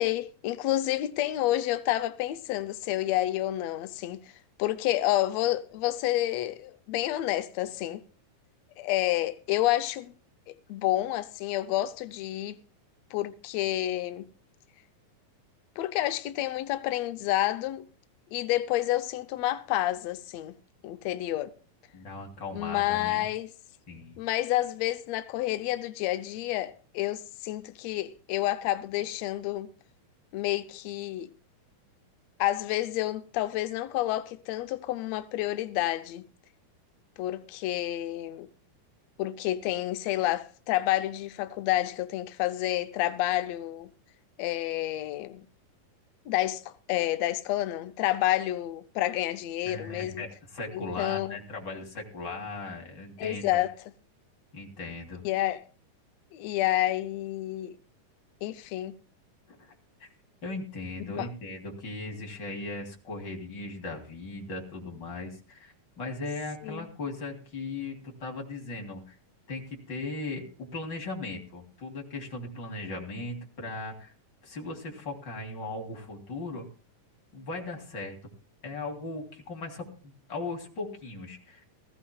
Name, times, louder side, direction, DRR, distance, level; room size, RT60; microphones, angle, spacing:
voice 1, 0.0-4.2 4.6-8.0 8.8-10.1 10.5-12.6 13.1-14.3 15.8-17.9 18.3-20.5 20.8-21.5 22.5-23.5 24.2-29.7 30.3-31.3 32.4-36.3 37.2-38.5 39.2-43.9 44.4-45.5 46.3-50.2 50.7-51.4 53.2-53.7 55.2-55.6 56.3-57.8 58.4-59.0 61.2-61.3 66.6-66.9, left 14 dB, 90° left, 1.5 m, -29 dB
voice 2, 21.9-23.3 23.9-24.2 49.6-53.4 54.5-55.2 59.5-59.7 60.0-60.1 60.4-69.2 69.5-74.1 74.4-76.6 77.3-78.2 78.6-81.6, left 3 dB, 35° left, 3.5 m, -38 dB
20.0 x 15.0 x 2.3 m
omnidirectional pair, 3.8 m